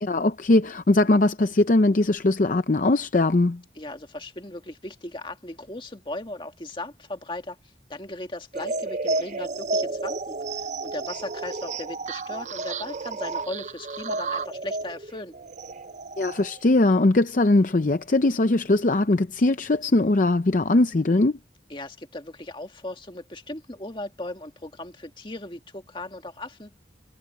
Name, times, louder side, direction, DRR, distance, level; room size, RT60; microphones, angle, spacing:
voice 1, 0.0-3.6 16.2-21.4, left 2 dB, 45° left, 0.6 m, -20 dB
voice 2, 3.8-7.6 7.9-15.3 21.7-26.8, left 2 dB, 30° left, 1.9 m, -37 dB
sound 1, 8.5-16.6, right 3 dB, 40° right, 0.5 m, -31 dB
head